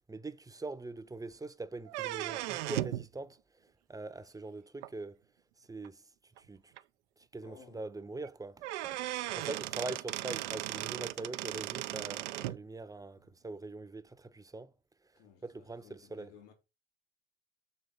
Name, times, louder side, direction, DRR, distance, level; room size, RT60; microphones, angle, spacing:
voice 1, 0.1-3.4 3.9-5.2 5.7-6.0 6.4-6.7 7.2-14.7 15.4-16.3, right 3 dB, 10° right, 0.7 m, -43 dB
sound 1, 1.9-3.1 4.8-4.9 5.8-5.9 6.4-6.5 6.8-6.9 8.2-8.3 8.6-12.6, right 16 dB, 80° right, 0.5 m, -37 dB
voice 2, 7.4-7.8 9.3-9.8 15.2-16.5, left 7 dB, 75° left, 1.6 m, -58 dB
6.7 x 3.8 x 5.4 m
hypercardioid pair, 65°, 34 cm